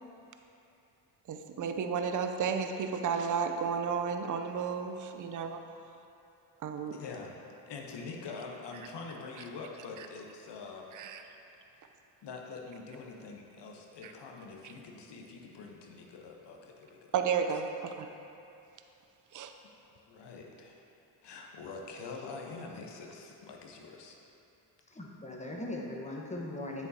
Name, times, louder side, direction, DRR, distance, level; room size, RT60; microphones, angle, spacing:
voice 1, 1.3-5.6 6.6-7.0 10.9-11.2 14.0-14.1 17.1-18.1 19.3-19.5, right 6 dB, 40° right, 6 dB, 0.6 m, -32 dB
voice 2, 6.9-7.4 7.7-10.9 12.2-17.1 20.1-20.8 21.2-24.2, left 4 dB, 60° left, 1 dB, 1.0 m, -45 dB
voice 3, 24.9-26.9, left 1 dB, 15° left, -2 dB, 1.2 m, -39 dB
8.2 x 6.7 x 2.8 m, 2.8 s
supercardioid pair, 60°, 47 cm